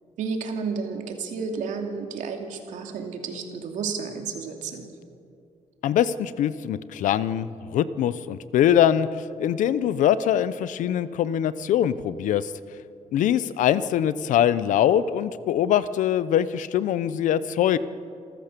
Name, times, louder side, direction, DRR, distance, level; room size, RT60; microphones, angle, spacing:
voice 1, 0.2-4.9, right 5 dB, 75° right, 3 dB, 2.6 m, -31 dB
voice 2, 5.8-12.5 13.1-17.8, left 10 dB, 85° left, 15 dB, 0.8 m, -23 dB
28.0 x 14.0 x 6.9 m, 2.4 s
cardioid pair, 175°, 13 cm